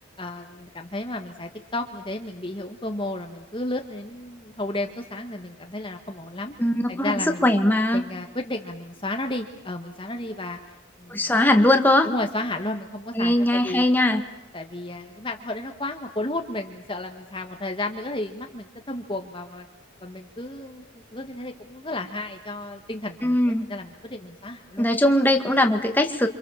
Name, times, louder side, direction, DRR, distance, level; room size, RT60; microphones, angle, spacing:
voice 1, 0.2-6.6 6.9-7.4 7.9-10.6 11.0-11.3 12.0-13.9 14.5-19.7 20.0-24.9, left 2 dB, 25° left, 4 dB, 1.5 m, -33 dB
voice 2, 6.6-7.1 7.4-8.0 11.1-12.1 13.1-14.2 23.2-23.7 24.8-26.3, left 1 dB, 10° left, 5 dB, 1.8 m, -20 dB
29.0 x 26.0 x 7.2 m, 0.90 s
head